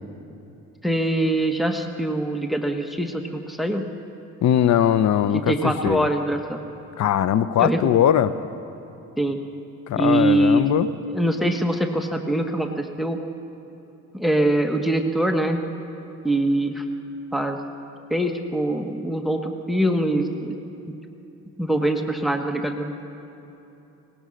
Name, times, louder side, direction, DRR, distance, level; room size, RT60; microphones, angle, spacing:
voice 1, 0.8-3.9 5.3-6.6 7.6-7.8 9.2-9.4 9.9-10.7 11.1-13.2 14.1-15.6 16.2-16.8 17.3-17.6 18.1-20.6 21.6-23.1, right 1 dB, ahead, 4 dB, 1.4 m, -23 dB
voice 2, 4.4-6.1 7.0-8.3 9.9-10.9, left 10 dB, 65° left, 14 dB, 0.8 m, -20 dB
23.5 x 19.5 x 6.5 m, 3.0 s
cardioid pair, 90°, 30 cm